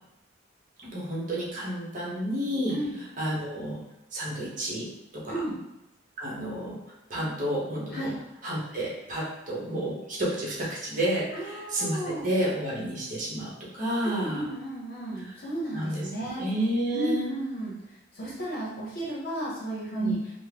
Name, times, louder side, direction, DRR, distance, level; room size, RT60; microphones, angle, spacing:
voice 1, 0.9-2.8 3.2-3.8 4.1-4.9 5.2-5.4 6.2-6.8 7.1-8.1 8.4-14.5 15.7-16.1 16.4-17.4 20.0-20.2, right 1 dB, 40° right, -5 dB, 0.9 m, -30 dB
voice 2, 2.7-3.0 5.3-5.6 7.9-8.1 11.3-12.3 14.0-16.4 16.9-20.2, right 1 dB, 50° left, -6 dB, 0.8 m, -34 dB
3.5 x 2.1 x 3.4 m, 0.89 s
head